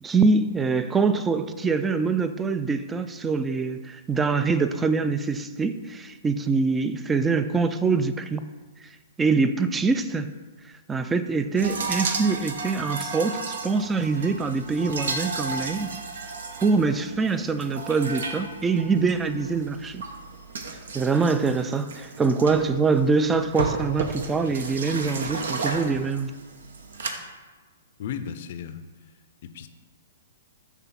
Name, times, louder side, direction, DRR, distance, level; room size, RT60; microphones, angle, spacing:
voice 1, 0.0-8.5 9.2-10.3 10.9-16.0 16.6-20.0 20.9-26.3, right 4 dB, 15° right, 10 dB, 0.3 m, -24 dB
sound 1, 11.6-27.1, right 4 dB, 70° right, 0.7 m, -34 dB
voice 2, 28.0-28.8 29.4-29.7, left 8 dB, 55° left, 10 dB, 0.5 m, -34 dB
5.8 x 3.5 x 5.8 m, 1.3 s
hypercardioid pair, 120°, 0 cm